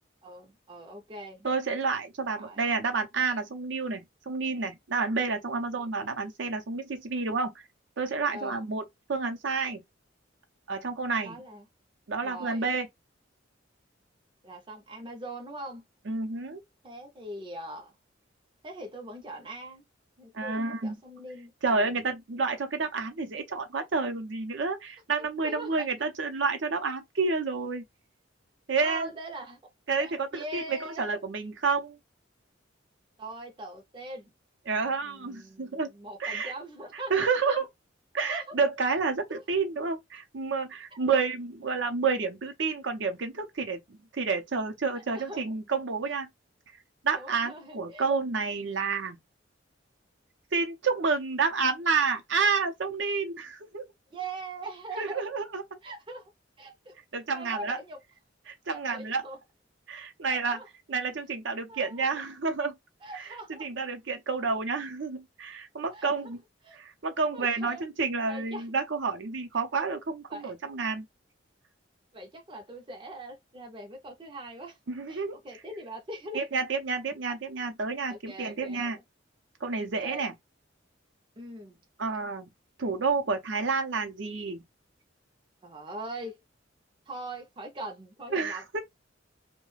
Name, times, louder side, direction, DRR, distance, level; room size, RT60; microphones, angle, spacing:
voice 1, 0.2-1.5 2.4-2.6 5.8-5.9 8.3-8.6 11.2-11.7 12.2-12.7 14.4-15.8 16.8-17.9 18.6-19.8 20.2-22.0 25.4-25.9 28.8-29.6 30.0-31.1 33.2-34.3 35.0-37.1 37.5-37.6 38.3-38.5 39.3-39.4 41.1-41.2 44.9-45.4 47.1-48.1 54.1-55.2 55.8-56.3 56.6-57.0 57.3-58.0 58.7-59.4 60.2-60.7 61.7-62.1 63.0-63.7 65.9-66.3 66.6-66.8 67.3-67.8 68.2-68.7 70.3-70.5 72.1-74.8 75.1-76.4 78.1-79.0 80.0-80.3 81.4-81.8 82.0-82.2 85.6-86.4 87.1-88.6, right 1 dB, 25° right, 0.5 m, -42 dB
voice 2, 1.4-7.5 8.0-8.8 9.1-9.8 10.7-11.4 12.1-12.9 16.1-16.6 20.3-21.0 21.6-27.8 28.7-29.1 29.9-32.0 34.7-35.9 36.2-36.5 37.1-37.7 38.1-46.3 47.0-49.2 50.5-53.9 55.0-55.6 57.1-57.8 58.5-59.2 59.9-60.6 60.9-62.8 63.1-63.3 63.6-66.4 66.7-71.0 74.9-75.4 76.3-79.0 79.6-80.3 82.0-82.5 82.8-84.6 88.3-88.8, right 4 dB, 65° right, 0.6 m, -29 dB
2.3 x 2.2 x 3.1 m
head